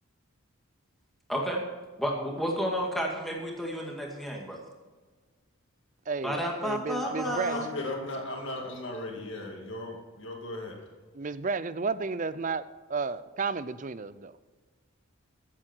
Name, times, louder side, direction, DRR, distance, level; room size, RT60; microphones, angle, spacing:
voice 1, 1.3-1.6 2.0-4.6 6.2-7.7, equal, ahead, 2.1 m, -31 dB
voice 2, 6.1-7.9 11.1-12.6 12.9-14.3, right 4 dB, 35° right, 0.5 m, -32 dB
voice 3, 7.0-10.9, left 2 dB, 55° left, 2.5 m, -37 dB
15.0 x 8.7 x 4.5 m
head